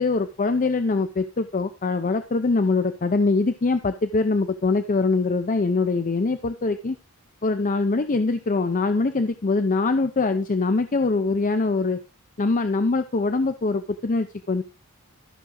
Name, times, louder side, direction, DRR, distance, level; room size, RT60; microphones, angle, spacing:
voice 1, 0.0-7.0 7.4-12.0 12.4-14.6, left 3 dB, 40° left, 9 dB, 0.6 m, -23 dB
13.0 x 6.0 x 3.8 m, 0.31 s
head